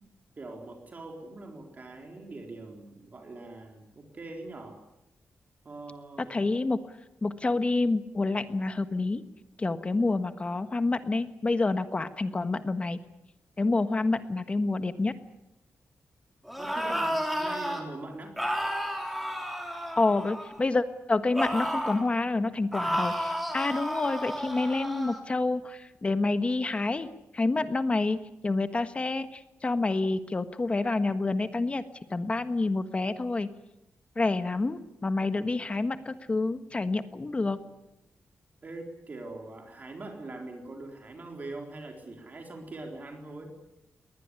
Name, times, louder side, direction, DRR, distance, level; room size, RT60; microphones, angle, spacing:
voice 1, 0.4-4.8 5.6-6.4 10.0-10.1 16.6-18.4 38.6-43.5, right 2 dB, 35° right, 3 dB, 3.9 m, -42 dB
voice 2, 6.3-6.8 7.2-9.2 9.6-13.0 13.6-15.1 20.0-27.1 27.3-31.8 32.1-33.5 34.2-37.6, left 3 dB, 25° left, 11 dB, 1.4 m, -28 dB
sound 1, 16.5-17.8 18.4-20.6 21.3-22.1 22.7-25.2, equal, ahead, 3.8 m, -32 dB
22.0 x 19.5 x 9.7 m, 0.91 s
wide cardioid pair, 145°, 5 cm